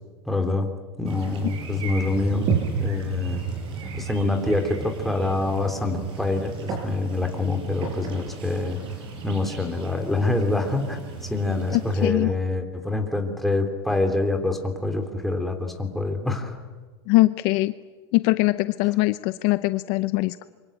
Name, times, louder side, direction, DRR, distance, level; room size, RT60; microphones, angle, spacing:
voice 1, 0.2-0.7 1.0-2.5 2.8-3.4 3.9-8.8 9.2-16.6, left 2 dB, ahead, 3 dB, 3.1 m, -26 dB
sound 1, 1.1-12.1, right 6 dB, 40° right, 6.7 m, -33 dB
voice 2, 11.7-12.3 17.1-17.7 18.1-20.5, left 20 dB, 55° left, 13 dB, 0.8 m, -22 dB
26.0 x 24.5 x 9.0 m, 1.4 s
supercardioid pair, 140°, 13 cm